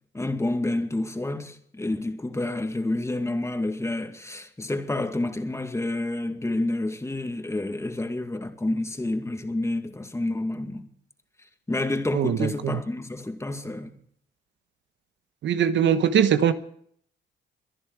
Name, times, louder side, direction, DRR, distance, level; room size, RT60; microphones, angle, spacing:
voice 1, 0.1-10.9 11.7-13.9, left 2 dB, 15° left, 2.1 m, -29 dB
voice 2, 12.1-12.8 15.4-16.5, right 8 dB, 70° right, 1.1 m, -21 dB
22.5 x 11.0 x 4.7 m
cardioid pair, 90°, 20 cm